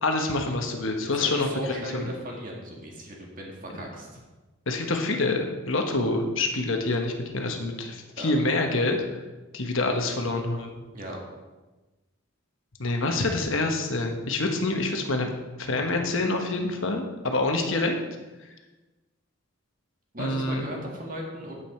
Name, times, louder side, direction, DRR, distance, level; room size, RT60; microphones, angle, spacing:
voice 1, 0.0-2.0 4.7-9.0 9.5-10.7 12.8-15.3 15.6-18.0 20.2-20.6, left 2 dB, 70° left, 3 dB, 1.2 m, -26 dB
voice 2, 1.2-4.2 8.2-8.3 10.9-11.2 20.1-21.5, equal, 40° right, -1 dB, 2.0 m, -37 dB
9.1 x 8.3 x 4.4 m, 1.2 s
head